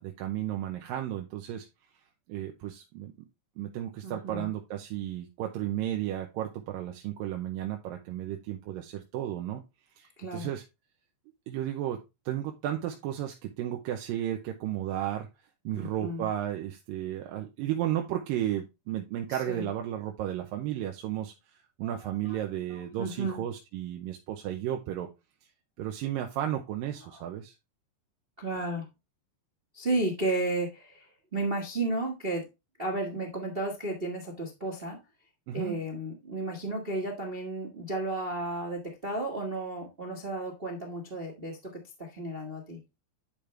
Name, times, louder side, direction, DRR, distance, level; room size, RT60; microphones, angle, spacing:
voice 1, 0.0-1.7 2.3-3.1 3.6-9.6 10.0-10.6 11.5-15.3 15.6-21.3 21.8-25.1 25.8-27.5 35.5-35.8, right 12 dB, 80° right, 3 dB, 2.5 m, -33 dB
voice 2, 4.0-4.5 10.2-10.5 15.7-16.3 19.3-19.7 21.8-21.9 22.2-22.4 22.7-23.4 27.1-27.2 28.4-28.8 29.7-32.4 32.8-35.0 35.5-41.6 42.0-42.8, right 2 dB, 35° right, 1 dB, 0.9 m, -33 dB
10.5 x 5.2 x 3.3 m, 0.24 s
omnidirectional pair, 4.1 m